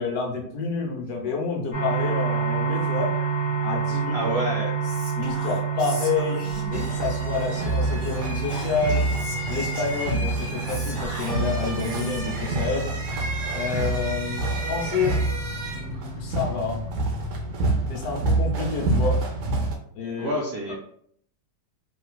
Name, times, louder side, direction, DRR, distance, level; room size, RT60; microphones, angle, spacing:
voice 1, 0.0-3.2 3.6-4.3 5.2-6.4 6.7-9.1 9.5-12.9 13.5-15.2 15.7-16.8 17.9-19.2 20.0-20.3 20.7-20.8, left 4 dB, 70° left, 0 dB, 1.2 m, -29 dB
sound 1, 1.7-19.4, right 6 dB, 30° left, 0.7 m, -31 dB
voice 2, 4.1-4.7 20.2-20.7, right 1 dB, 70° right, -2 dB, 0.6 m, -27 dB
Whispering, 4.8-7.1 8.0-12.4, equal, 25° right, 0.7 m, -39 dB
sound 2, 6.7-19.8, right 2 dB, 90° right, 1.3 m, -27 dB
3.2 x 2.8 x 2.2 m, 0.63 s
omnidirectional pair, 1.7 m